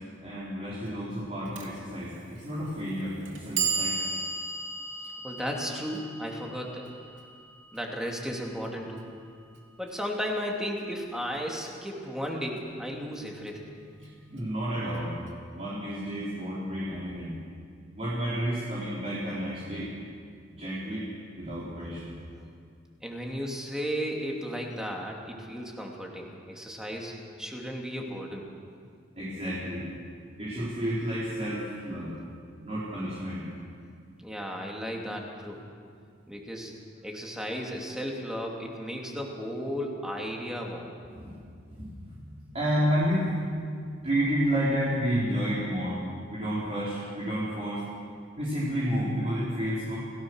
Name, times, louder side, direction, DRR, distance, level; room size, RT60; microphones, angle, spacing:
voice 1, 0.2-3.9 13.9-15.2 15.5-17.3 17.9-19.9 20.5-21.1 21.3-22.1 29.2-29.8 30.4-32.1 32.6-33.4 41.1-41.4 41.8-41.9 42.2-43.4 44.0-46.0 46.3-47.8 48.4-50.0, equal, 35° right, -9 dB, 4.7 m, -30 dB
Clock, 1.6-1.7 2.6-2.7 3.2-9.3, right 4 dB, 90° right, 3.1 m, -35 dB
voice 2, 5.2-6.9 7.7-9.1 9.8-13.6 23.0-28.4 34.2-35.6 36.3-36.7 37.0-40.9, equal, 5° right, -1 dB, 2.9 m, -34 dB
29.0 x 17.5 x 6.5 m, 2.2 s
head